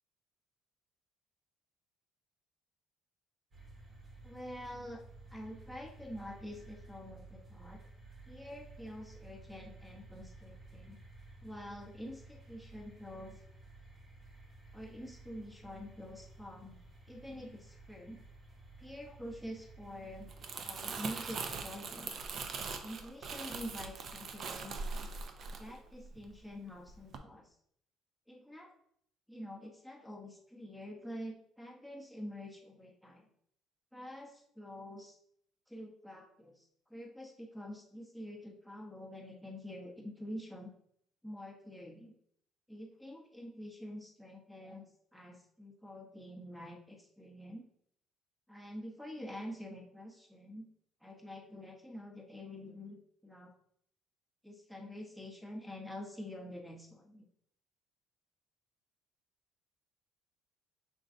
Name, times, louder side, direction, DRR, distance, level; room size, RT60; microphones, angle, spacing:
sound 1, 3.5-21.6, right 2 dB, 30° right, 1.0 m, -54 dB
voice 1, 4.2-5.0 5.3-7.8 8.3-11.0 11.4-13.4 14.7-16.8 17.1-18.2 18.8-20.3 20.6-22.2 22.8-25.1 25.6-27.6 28.3-28.7 29.3-33.3 33.9-35.2 35.7-40.7 41.2-42.1 42.7-44.9 45.1-47.6 48.5-50.7 51.0-53.0 53.2-53.5 54.4-57.3, left 1 dB, ahead, 0 dB, 0.8 m, -47 dB
Crumpling crinkling, 20.1-26.5 26.9-27.2, right 4 dB, 50° right, 0.5 m, -42 dB
5.2 x 3.7 x 2.6 m, 0.69 s
cardioid pair, 135°, 0 cm